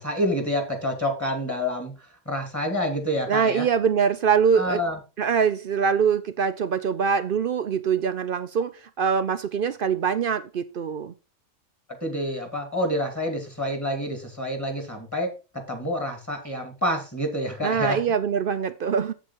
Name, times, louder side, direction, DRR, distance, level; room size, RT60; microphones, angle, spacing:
voice 1, 0.0-1.9 2.3-3.7 4.6-5.0 12.0-18.0, equal, 15° left, 2.5 m, -28 dB
voice 2, 3.3-4.8 5.2-11.1 17.6-19.1, right 6 dB, 55° right, 0.6 m, -23 dB
8.1 x 7.5 x 4.5 m
omnidirectional pair, 1.3 m